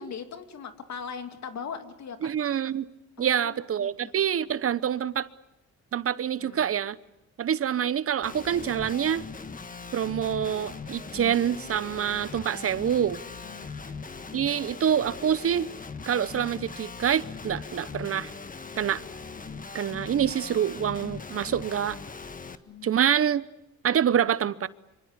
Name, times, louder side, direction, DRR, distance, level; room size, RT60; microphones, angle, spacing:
voice 1, 0.0-2.3 3.2-4.1 6.4-6.7 13.4-13.7 22.7-23.0, left 6 dB, 65° left, 2.7 m, -40 dB
voice 2, 2.2-2.9 3.2-5.3 5.9-7.0 7.4-9.2 9.9-13.2 14.3-15.7 16.1-18.3 18.8-19.0 19.7-22.0 22.8-23.4 23.8-24.7, right 9 dB, 50° right, 0.9 m, -26 dB
Guitar, 8.2-22.6, left 4 dB, 25° left, 1.6 m, -40 dB
25.5 x 25.0 x 8.3 m
cardioid pair, 90°, 30 cm